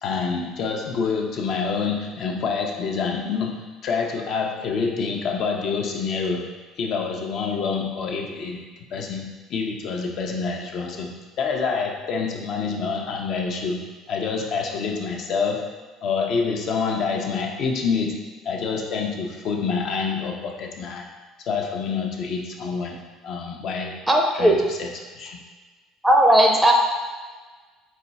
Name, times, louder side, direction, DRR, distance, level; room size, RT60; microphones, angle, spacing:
voice 1, 0.0-6.5 6.8-15.7 16.0-21.1 21.4-24.0 24.3-25.4, left 5 dB, 55° left, 1 dB, 0.6 m, -27 dB
voice 2, 24.1-24.5 26.0-26.7, right 1 dB, 10° right, 1 dB, 0.5 m, -16 dB
4.3 x 2.3 x 4.0 m, 1.3 s
cardioid pair, 115°, 0 cm